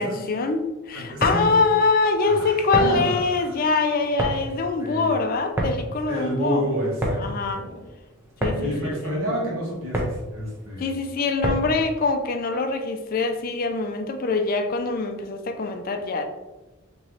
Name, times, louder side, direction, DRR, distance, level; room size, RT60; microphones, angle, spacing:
voice 1, 0.0-6.7 7.2-7.7 8.4-9.2 10.8-16.2, left 4 dB, 45° left, 6 dB, 0.4 m, -24 dB
voice 2, 0.9-1.5 2.2-3.6 4.8-5.2 6.0-7.9 8.6-10.9, equal, 85° right, -4 dB, 1.3 m, -29 dB
sound 1, 1.0-11.9, right 1 dB, 10° right, 0.5 m, -30 dB
3.1 x 3.0 x 3.8 m, 1.1 s
head